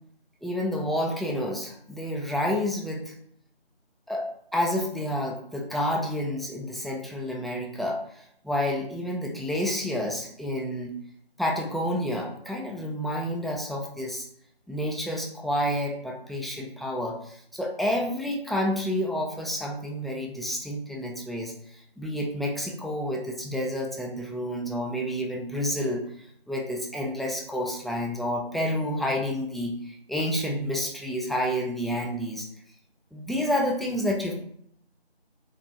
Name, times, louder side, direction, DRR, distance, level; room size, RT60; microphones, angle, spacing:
voice 1, 0.4-3.1 4.1-10.9 11.4-14.3 14.7-21.5 22.0-26.0 26.5-32.5 33.1-34.3, equal, ahead, -1 dB, 0.3 m, -29 dB
3.4 x 2.4 x 2.9 m, 0.67 s
figure-of-eight pair, 175°, 32 cm